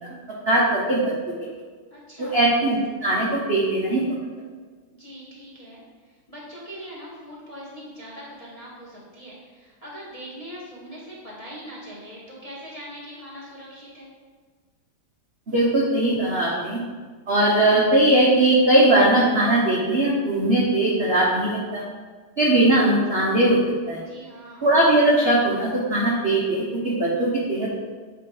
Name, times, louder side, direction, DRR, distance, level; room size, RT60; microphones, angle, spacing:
voice 1, 0.5-1.0 2.2-4.0 15.5-16.8 17.3-21.8 22.4-23.6 23.9-24.0 24.6-27.7, right 1 dB, 50° right, -5 dB, 0.7 m, -20 dB
voice 2, 1.9-2.4 4.9-5.8 6.3-14.1 24.1-24.7, equal, 25° left, -5 dB, 1.0 m, -41 dB
8.2 x 3.0 x 4.8 m, 1.5 s
omnidirectional pair, 2.4 m